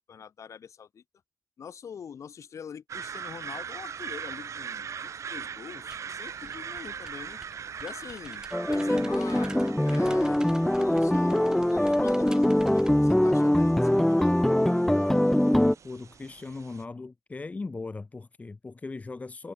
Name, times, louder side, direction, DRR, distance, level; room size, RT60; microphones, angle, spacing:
voice 1, 0.1-1.0 1.6-7.4 7.8-14.3, left 7 dB, 50° left, 5.6 m, -44 dB
sound 1, 2.9-16.8, right 7 dB, 50° right, 5.6 m, -41 dB
sound 2, 5.7-12.9, right 1 dB, 10° right, 8.0 m, -50 dB
sound 3, 8.5-15.8, left 1 dB, 5° left, 0.7 m, -23 dB
voice 2, 15.5-19.5, left 3 dB, 20° left, 2.4 m, -39 dB
cardioid pair, 120°, 7 cm